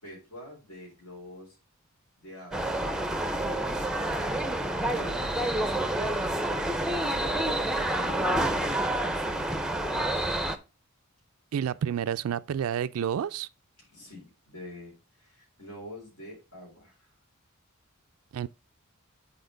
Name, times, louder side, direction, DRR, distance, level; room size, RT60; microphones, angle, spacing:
voice 1, 0.0-1.6 2.2-3.8 4.9-9.4 13.9-17.1, equal, 80° left, 3.9 m, -46 dB
sound 1, 2.5-10.6, right 1 dB, 5° right, 0.5 m, -28 dB
voice 2, 11.5-13.5 18.3-18.5, right 8 dB, 70° right, 0.3 m, -29 dB
8.6 x 4.4 x 3.8 m
head